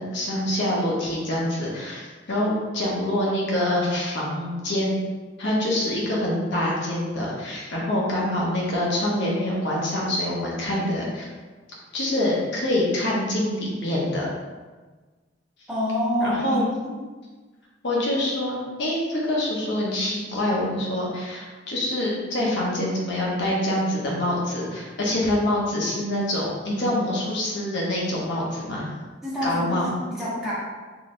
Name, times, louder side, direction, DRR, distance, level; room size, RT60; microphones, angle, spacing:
voice 1, 0.0-5.0 5.4-11.2 11.9-14.3 16.2-16.6 17.8-28.9 29.4-29.9, left 1 dB, 65° left, -4 dB, 0.8 m, -25 dB
voice 2, 15.7-16.9 29.2-30.5, equal, ahead, -10 dB, 1.3 m, -27 dB
3.8 x 3.1 x 2.5 m, 1.4 s
head